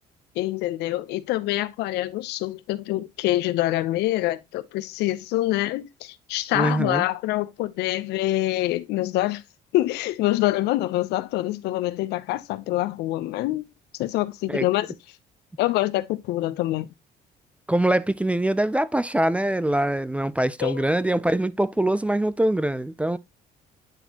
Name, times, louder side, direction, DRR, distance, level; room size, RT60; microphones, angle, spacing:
voice 1, 0.4-9.4 9.7-13.7 14.0-14.9 15.6-16.9 20.6-20.8, left 16 dB, 85° left, 0.6 m, -25 dB
voice 2, 6.5-7.1 14.5-14.7 17.7-23.2, right 1 dB, 10° right, 0.3 m, -23 dB
9.1 x 4.2 x 2.8 m
cardioid pair, 110°, 17 cm